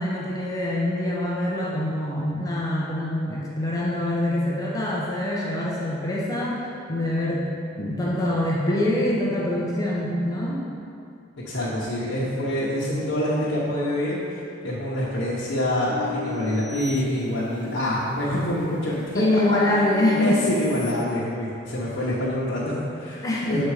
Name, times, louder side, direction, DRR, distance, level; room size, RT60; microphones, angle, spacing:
voice 1, 0.0-7.5 7.8-10.6 19.1-20.5 23.2-23.6, left 1 dB, 20° left, -5 dB, 0.8 m, -25 dB
voice 2, 11.5-19.2 19.5-19.6 20.2-23.6, equal, 70° left, -9 dB, 1.1 m, -26 dB
sound 1, 15.9-17.9 18.4-20.9, left 7 dB, 25° right, 1.5 m, -37 dB
7.4 x 4.3 x 4.9 m, 2.4 s
head